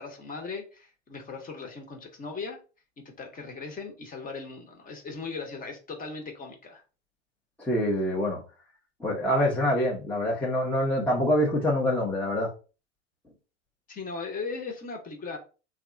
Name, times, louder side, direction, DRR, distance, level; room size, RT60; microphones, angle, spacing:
voice 1, 0.0-2.6 3.0-6.8 13.9-15.4, left 4 dB, 25° left, 1.2 m, -38 dB
voice 2, 7.6-8.4 9.0-12.5, left 1 dB, 5° left, 0.9 m, -25 dB
3.5 x 2.4 x 3.8 m
hypercardioid pair, 105°, 36 cm